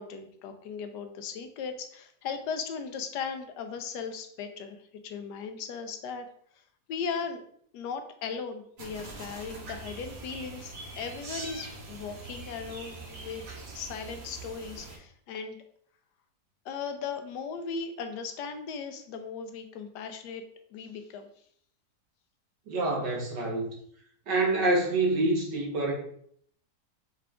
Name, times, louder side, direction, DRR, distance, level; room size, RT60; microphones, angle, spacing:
voice 1, 0.0-4.8 5.0-6.3 6.9-7.5 7.7-13.4 13.7-15.6 16.6-20.4 20.7-21.3, left 5 dB, 80° left, 7 dB, 1.2 m, -37 dB
sound 1, 8.8-15.0, right 3 dB, 55° right, 1.4 m, -43 dB
voice 2, 22.7-23.7 24.3-25.9, right 2 dB, 85° right, -2 dB, 1.8 m, -26 dB
5.6 x 2.4 x 3.4 m, 0.63 s
omnidirectional pair, 1.8 m